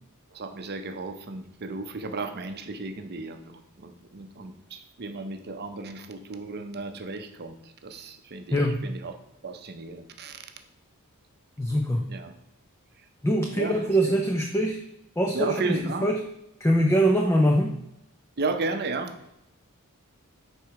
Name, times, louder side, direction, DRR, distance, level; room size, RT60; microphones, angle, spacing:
voice 1, 0.3-9.2 9.4-10.5 12.1-12.3 13.6-14.1 15.3-16.1 18.4-19.2, right 3 dB, 45° right, 7 dB, 0.7 m, -34 dB
voice 2, 8.5-8.8 11.6-12.1 13.2-14.8 15.2-16.2 16.6-17.8, equal, 10° left, 1 dB, 0.5 m, -23 dB
4.8 x 4.6 x 5.8 m, 0.84 s
head